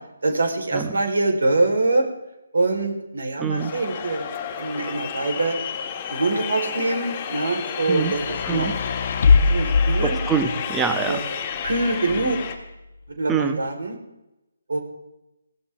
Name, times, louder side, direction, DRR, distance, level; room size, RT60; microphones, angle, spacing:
voice 1, 0.2-2.0 2.5-4.3 4.6-5.6 6.1-8.7 9.5-10.1 11.1-11.2 11.6-12.4 13.2-14.0 14.7-14.8, right 2 dB, 75° right, 3 dB, 4.5 m, -24 dB
voice 2, 3.4-3.7 7.9-8.1 8.4-8.8 10.0-11.2 13.3-13.6, right 6 dB, 10° right, 8 dB, 1.1 m, -25 dB
sound 1, 3.6-12.6, left 7 dB, 25° left, 1.9 m, -31 dB
sound 2, 8.0-10.8 11.7-12.6, left 4 dB, 45° left, 1.6 m, -22 dB
21.0 x 16.5 x 3.8 m, 0.92 s
hypercardioid pair, 165°, 0 cm